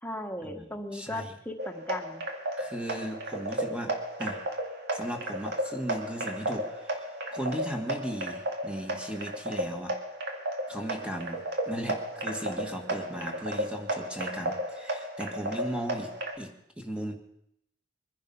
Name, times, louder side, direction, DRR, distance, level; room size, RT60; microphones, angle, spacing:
voice 1, 0.0-2.3, left 1 dB, 10° left, 4 dB, 1.5 m, -37 dB
voice 2, 0.9-1.3 2.6-3.9 4.2-4.4 4.9-9.9 10.7-16.1 16.4-17.1, equal, 5° right, 4 dB, 1.8 m, -37 dB
sound 1, 1.6-16.3, right 1 dB, 60° right, 2.2 m, -34 dB
23.0 x 10.5 x 5.6 m, 0.75 s
head